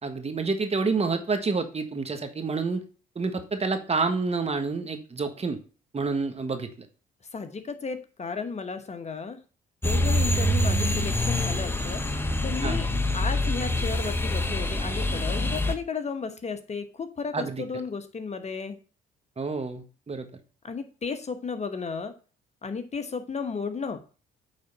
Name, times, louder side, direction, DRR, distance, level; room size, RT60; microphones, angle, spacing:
voice 1, 0.0-2.8 3.1-5.6 5.9-6.9 12.6-12.8 17.3-17.6 19.4-20.3, right 4 dB, 30° right, 7 dB, 1.5 m, -28 dB
voice 2, 7.3-9.4 9.8-12.0 12.4-12.9 13.1-18.8 20.6-22.1 22.6-24.0, left 5 dB, 35° left, 8 dB, 1.1 m, -34 dB
sound 1, 9.8-15.8, left 1 dB, 10° left, 1.3 m, -25 dB
8.7 x 3.9 x 5.4 m, 0.36 s
supercardioid pair, 60°, 19 cm